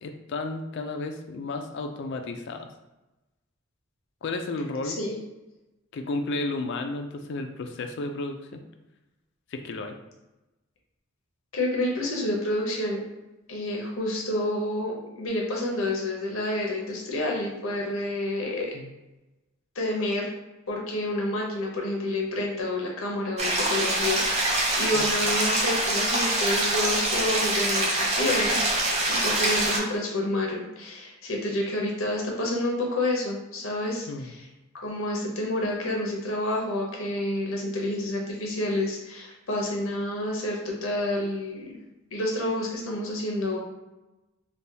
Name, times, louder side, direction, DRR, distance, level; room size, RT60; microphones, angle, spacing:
voice 1, 0.0-2.7 4.2-5.0 5.9-8.6 9.5-10.0 18.7-18.9 24.9-25.1 34.1-34.3, left 2 dB, 55° left, 5 dB, 0.3 m, -32 dB
voice 2, 11.5-13.0 13.5-18.7 19.8-20.3 20.7-34.5 34.8-41.7 42.1-43.6, left 1 dB, 75° left, -1 dB, 0.7 m, -29 dB
sound 1, 23.4-29.8, right 1 dB, 30° right, 0.5 m, -25 dB
3.3 x 2.2 x 2.7 m, 1.0 s
head